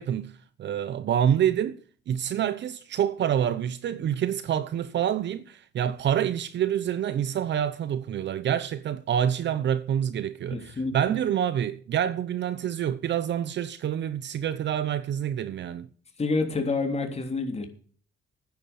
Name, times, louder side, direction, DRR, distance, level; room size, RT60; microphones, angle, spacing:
voice 1, 0.0-1.8 2.1-15.9, right 9 dB, 65° right, 0.9 m, -27 dB
voice 2, 10.5-10.9 16.2-17.7, left 3 dB, 30° left, 3.4 m, -28 dB
10.5 x 9.7 x 7.0 m
cardioid pair, 90°, 20 cm